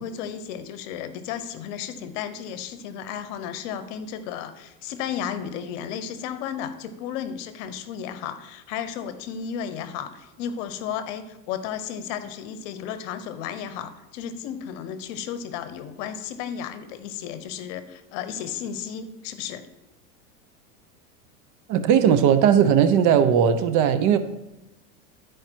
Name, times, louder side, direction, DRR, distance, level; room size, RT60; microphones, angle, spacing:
voice 1, 0.0-19.7, left 8 dB, 55° left, 12 dB, 0.9 m, -33 dB
voice 2, 21.7-24.2, right 8 dB, 40° right, 10 dB, 0.7 m, -18 dB
11.5 x 4.8 x 4.5 m, 0.96 s
hypercardioid pair, 115°, 44 cm